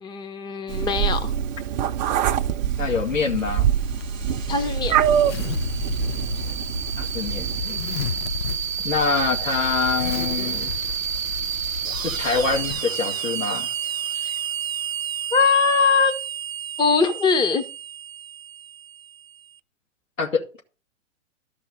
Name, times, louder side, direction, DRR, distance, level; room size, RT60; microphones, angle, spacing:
voice 1, 0.0-1.3 4.5-5.0 14.1-14.3 15.3-16.2 16.8-17.7, left 5 dB, 10° left, 1.0 m, -21 dB
Meow, 0.7-7.6, right 9 dB, 35° right, 0.8 m, -25 dB
voice 2, 2.8-3.7 7.0-7.4 8.8-10.7 12.0-13.7 20.2-20.6, left 4 dB, 80° left, 2.6 m, -25 dB
Zipper (clothing), 2.9-12.8, left 8 dB, 50° left, 0.7 m, -34 dB
sound 1, 3.1-19.4, right 8 dB, 90° right, 0.5 m, -30 dB
13.0 x 5.5 x 6.4 m
figure-of-eight pair, 110°, 38 cm